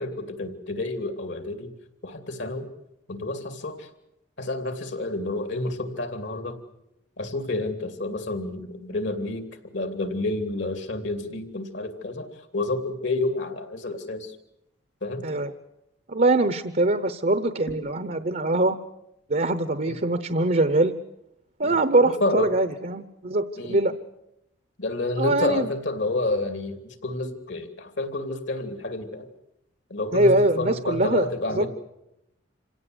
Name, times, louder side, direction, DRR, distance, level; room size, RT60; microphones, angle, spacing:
voice 1, 0.0-1.7 2.0-2.7 3.1-3.9 4.4-6.6 7.2-12.3 12.5-14.3 15.0-15.3 19.8-20.0 21.6-22.5 23.6-23.8 24.8-29.3 29.9-31.7, left 2 dB, 65° left, 7 dB, 2.7 m, -29 dB
voice 2, 16.1-18.8 19.3-20.9 21.6-23.9 25.2-25.7 30.1-31.3 31.6-31.7, right 2 dB, 45° right, 11 dB, 0.9 m, -22 dB
27.0 x 17.5 x 8.0 m, 0.87 s
head